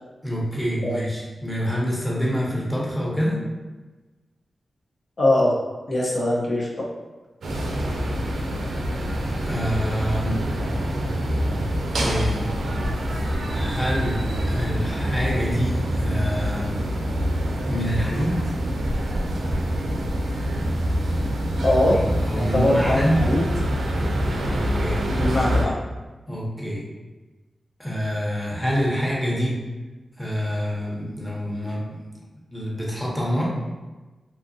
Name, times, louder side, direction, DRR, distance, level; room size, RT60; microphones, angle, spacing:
voice 1, 0.2-3.4 9.4-10.4 12.0-12.3 13.5-16.8 17.7-18.5 21.9-23.3 24.5-25.0 26.3-26.8 27.8-29.6 30.2-32.0 32.5-33.5, equal, 10° left, -5 dB, 0.8 m, -26 dB
voice 2, 5.2-5.5 5.9-6.7 21.6-22.0 22.3-23.4 25.1-25.8, left 1 dB, 60° left, -5 dB, 0.5 m, -21 dB
sound 1, 7.4-25.6, equal, 80° right, 0.4 m, -25 dB
2.7 x 2.4 x 2.6 m, 1.2 s
cardioid pair, 60°, 0 cm